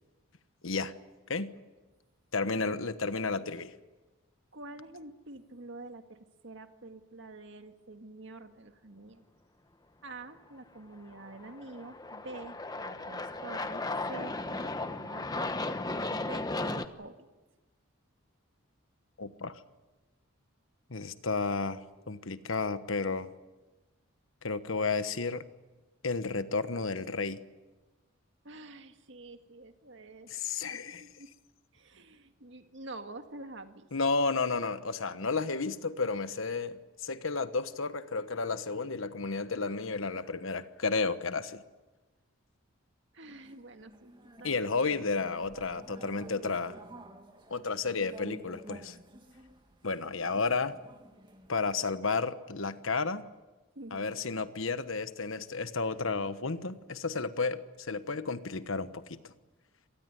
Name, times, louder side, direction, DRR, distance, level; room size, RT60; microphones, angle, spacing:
voice 1, 2.3-3.7 19.2-19.6 20.9-21.8 22.1-23.3 24.4-25.4 26.0-27.4 30.3-31.0 33.9-41.6 44.4-46.7 47.5-49.0 49.8-50.7 51.5-53.3 53.9-59.3, left 4 dB, 70° left, 12 dB, 1.3 m, -32 dB
voice 2, 4.5-9.2 10.0-15.6 16.1-17.3 28.4-30.3 30.6-31.3 31.7-33.9 43.1-44.6 53.8-54.0, right 2 dB, 60° right, 7 dB, 2.0 m, -47 dB
Aircraft, 11.1-16.8, left 2 dB, 20° left, 1.1 m, -35 dB
sound 1, 43.3-52.0, right 1 dB, 20° right, 2.3 m, -51 dB
26.5 x 19.0 x 9.6 m, 1.2 s
head